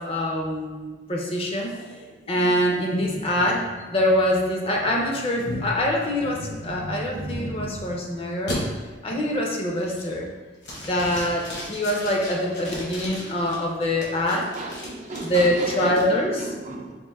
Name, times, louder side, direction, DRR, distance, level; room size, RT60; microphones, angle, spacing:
voice 1, 0.0-1.7 2.3-8.6 9.0-10.3 10.8-14.5 15.2-16.5, left 1 dB, 30° left, 0 dB, 0.5 m, -24 dB
sound 1, 1.7-8.0 8.5-8.6 9.1-9.4 9.8-10.3 10.6-13.6 14.0-16.0, equal, 65° left, 1.1 m, -37 dB
voice 2, 14.1-17.0, right 2 dB, 40° right, 2 dB, 0.3 m, -34 dB
4.3 x 2.5 x 3.4 m, 1.4 s
head